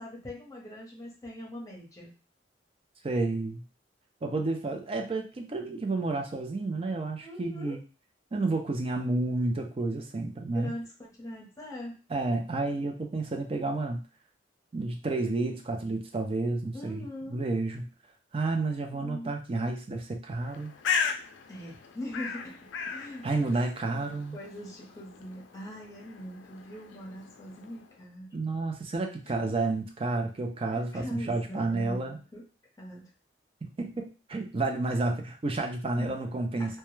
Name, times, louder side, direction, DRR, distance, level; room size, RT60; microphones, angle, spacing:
voice 1, 0.0-2.1 7.2-7.8 10.4-12.0 16.7-17.4 18.9-19.3 21.5-23.5 23.9-28.3 29.2-29.3 30.7-32.4 32.8-33.1 36.0-36.2 36.6-36.8, left 1 dB, 20° left, -3 dB, 0.8 m, -42 dB
voice 2, 3.0-3.6 4.2-7.8 8.3-10.7 12.1-14.0 14.7-17.9 18.3-20.7 23.2-24.4 28.3-32.2 33.6-36.8, right 2 dB, 30° right, 4 dB, 0.4 m, -30 dB
Bird, 20.4-28.0, left 6 dB, 80° left, 0.4 m, -37 dB
2.2 x 2.2 x 3.0 m, 0.35 s
head